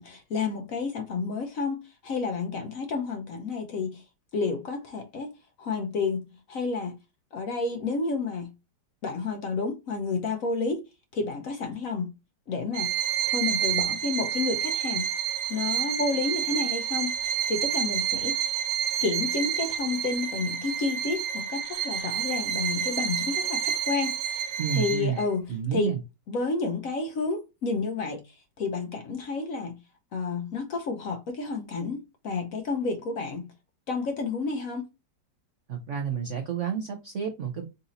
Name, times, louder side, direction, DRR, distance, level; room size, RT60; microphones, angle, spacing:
voice 1, 0.0-4.0 4.3-5.3 5.6-6.2 6.5-7.0 7.3-8.5 9.0-10.8 11.1-12.1 12.5-12.9 13.3-15.1 15.5-18.5 19.0-26.0 26.3-29.8 30.1-33.5 33.9-34.8, left 4 dB, 60° left, 0.9 m, -30 dB
Bowed string instrument, 12.7-25.2, right 9 dB, 85° right, 1.4 m, -29 dB
voice 2, 24.6-25.2 25.5-26.0 35.7-37.7, right 7 dB, 60° right, 0.8 m, -30 dB
4.0 x 2.7 x 3.8 m
omnidirectional pair, 2.0 m